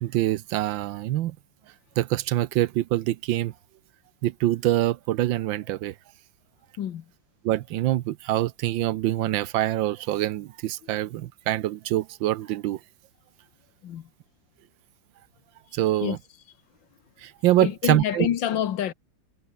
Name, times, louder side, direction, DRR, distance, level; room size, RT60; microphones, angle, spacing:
voice 1, 0.0-1.4 2.0-3.5 4.2-5.9 7.4-12.8 15.7-16.2 17.2-18.3, right 14 dB, 85° right, 1.5 m, -25 dB
voice 2, 6.8-7.1 10.8-11.0 13.8-14.1 15.7-16.2 17.6-18.9, left 10 dB, 75° left, 1.9 m, -28 dB
omnidirectional pair, 2.0 m